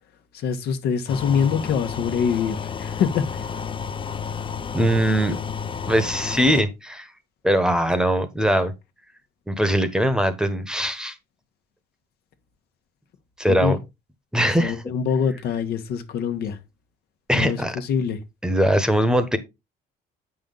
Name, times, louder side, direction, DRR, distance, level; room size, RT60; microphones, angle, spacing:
voice 1, 0.3-3.4 13.5-13.8 14.6-16.6 17.3-18.2, left 7 dB, 70° left, 1.4 m, -24 dB
sound 1, 1.1-6.6, left 6 dB, 30° left, 0.6 m, -31 dB
voice 2, 4.7-5.4 5.9-7.1 7.4-8.7 9.5-11.1 13.4-13.8 14.3-14.8 17.3-17.8 18.4-19.4, equal, 5° right, 1.2 m, -21 dB
8.1 x 5.6 x 3.9 m
cardioid pair, 110°, 17 cm